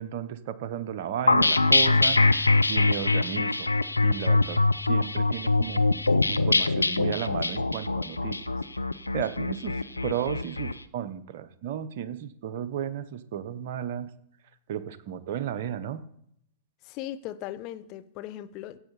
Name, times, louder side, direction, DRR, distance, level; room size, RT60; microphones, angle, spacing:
voice 1, 0.0-3.7 4.0-4.6 4.9-5.8 6.3-8.4 9.1-14.1 14.7-16.0, right 9 dB, 55° right, 0.8 m, -34 dB
sound 1, 1.3-10.7, left 3 dB, 85° left, 0.5 m, -23 dB
voice 2, 16.8-18.8, left 12 dB, 40° left, 0.8 m, -38 dB
15.5 x 7.7 x 4.1 m
figure-of-eight pair, 100°, 0 cm